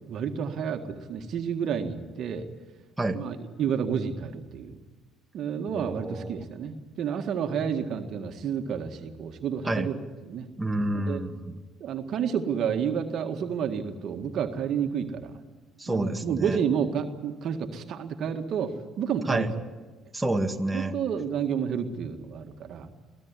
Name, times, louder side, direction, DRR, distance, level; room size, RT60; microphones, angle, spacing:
voice 1, 0.0-2.5 3.1-4.8 5.3-10.0 10.2-10.5 10.9-11.2 11.8-15.4 15.9-19.5 20.7-23.0, right 7 dB, 60° right, 6 dB, 1.8 m, -30 dB
voice 2, 5.7-6.4 9.7-9.9 10.6-11.6 15.8-16.6 19.3-19.5 20.1-20.9, right 1 dB, 10° right, 3 dB, 2.1 m, -29 dB
23.5 x 17.0 x 9.9 m, 1.3 s
hypercardioid pair, 55°, 0 cm